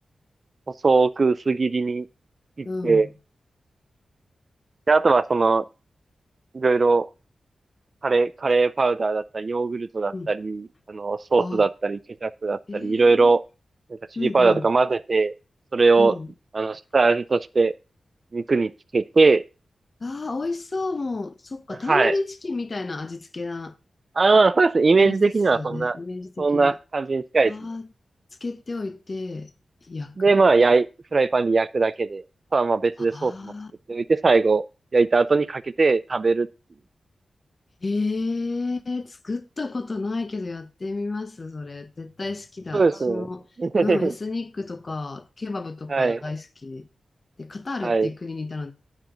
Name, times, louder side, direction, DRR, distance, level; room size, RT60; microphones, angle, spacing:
voice 1, 0.8-2.1 2.6-3.1 4.9-5.6 6.5-7.1 8.0-13.4 14.2-15.3 15.7-16.1 16.5-17.7 18.3-19.4 21.9-22.1 24.2-26.0 26.4-27.5 30.2-30.9 31.1-32.2 32.5-33.3 33.9-34.6 34.9-36.5 42.7-43.3 43.6-44.1 45.9-46.2 47.8-48.1, right 3 dB, 35° right, 0.3 m, -20 dB
voice 2, 2.6-3.1 10.1-10.3 11.4-11.7 12.7-13.3 14.2-14.7 16.0-16.3 20.0-23.8 25.0-26.8 27.4-27.9 28.4-29.5 29.8-30.4 33.0-33.7 37.8-43.5 43.8-46.9 47.4-48.7, left 3 dB, 30° left, 0.6 m, -31 dB
9.3 x 4.9 x 5.0 m
wide cardioid pair, 170°, 0 cm